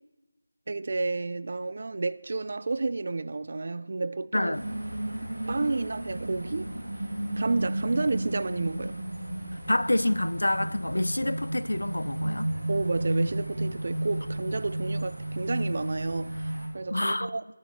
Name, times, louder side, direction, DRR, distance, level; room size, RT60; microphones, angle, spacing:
voice 1, 0.7-4.6 5.5-6.7 7.4-9.0 12.7-17.5, right 3 dB, 35° right, 0.3 m, -31 dB
voice 2, 4.3-4.6 9.7-12.5 16.9-17.4, left 1 dB, 85° left, 0.5 m, -27 dB
sound 1, 4.5-16.7, right 1 dB, 70° right, 2.8 m, -33 dB
10.0 x 9.5 x 6.9 m
figure-of-eight pair, 175°, 0 cm